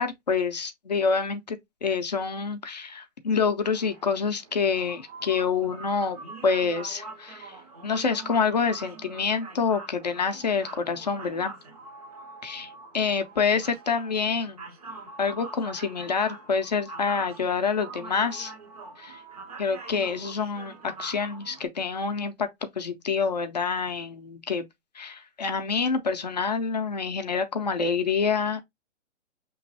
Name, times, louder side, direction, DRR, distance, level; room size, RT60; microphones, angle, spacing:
voice 1, 0.0-7.6 7.8-11.5 12.4-14.6 15.2-18.5 19.0-19.2 19.6-24.6 24.9-28.6, left 5 dB, 35° left, 0.5 m, -27 dB
sound 1, 3.6-21.7, right 3 dB, 30° right, 0.6 m, -44 dB
5.7 x 3.0 x 2.6 m
hypercardioid pair, 170°, 36 cm